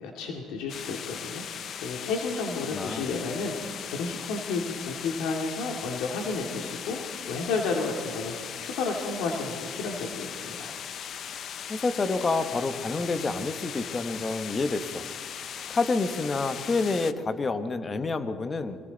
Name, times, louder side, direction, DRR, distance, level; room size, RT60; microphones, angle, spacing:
voice 1, 0.0-8.3 8.6-10.7, left 4 dB, 80° left, 1 dB, 2.2 m, -32 dB
sound 1, 0.7-17.1, left 8 dB, 50° left, 0.7 m, -38 dB
voice 2, 2.7-3.1 11.7-15.0 15.7-18.8, left 3 dB, 25° left, 9 dB, 1.2 m, -28 dB
29.0 x 22.0 x 4.0 m, 2.2 s
cardioid pair, 125°, 0 cm